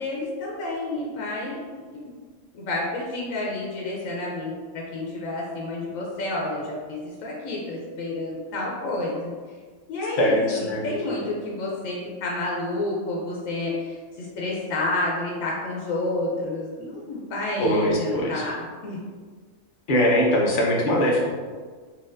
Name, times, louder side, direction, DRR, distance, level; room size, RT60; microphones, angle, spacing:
voice 1, 0.0-1.6 1.9-2.1 2.5-9.3 9.9-19.0, left 2 dB, 85° left, -3 dB, 1.0 m, -30 dB
voice 2, 10.2-10.9 17.6-18.4 19.9-21.3, equal, 50° left, -2 dB, 0.8 m, -21 dB
4.0 x 2.8 x 2.5 m, 1.5 s
omnidirectional pair, 1.3 m